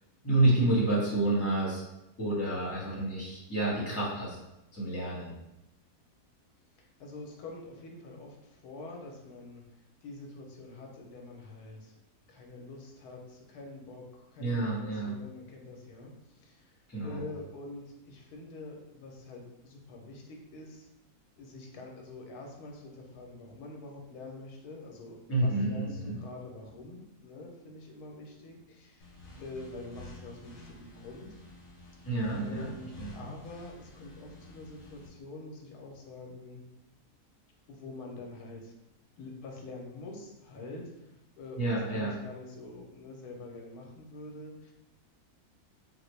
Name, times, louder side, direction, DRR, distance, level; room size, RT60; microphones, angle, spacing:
voice 1, 0.2-1.8 2.2-4.4 4.7-5.3 14.4-15.1 16.9-17.2 25.3-26.2 32.0-32.7 33.0-33.3 41.6-42.1, right 2 dB, 10° left, -7 dB, 1.0 m, -29 dB
voice 2, 7.0-9.6 10.0-11.9 12.3-16.1 16.4-20.9 21.4-31.3 32.4-36.6 37.7-38.7 39.2-41.1 41.4-44.7, left 2 dB, 85° left, 0 dB, 1.2 m, -46 dB
sound 1, 29.0-35.1, left 2 dB, 60° left, 1.0 m, -50 dB
3.5 x 2.2 x 3.1 m, 0.92 s
omnidirectional pair, 1.6 m